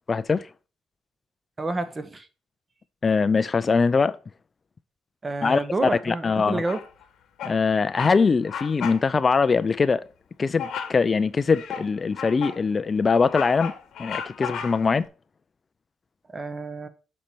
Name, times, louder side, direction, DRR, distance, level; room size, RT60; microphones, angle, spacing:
voice 1, 0.1-0.5 3.0-4.2 5.4-6.6 7.4-10.0 10.4-13.7 14.0-15.1, left 4 dB, 35° left, 0.3 m, -22 dB
voice 2, 1.6-2.3 5.2-6.8 16.3-16.9, right 2 dB, 25° right, 0.9 m, -29 dB
Bird vocalization bird call bird song, 6.6-7.0 7.4-7.6 7.9-8.2 8.5-9.0 9.4-9.5 10.6-11.0 11.5-12.6 13.0-15.0, left 7 dB, 70° left, 1.0 m, -34 dB
6.4 x 4.3 x 4.3 m
cardioid pair, 90°, 0 cm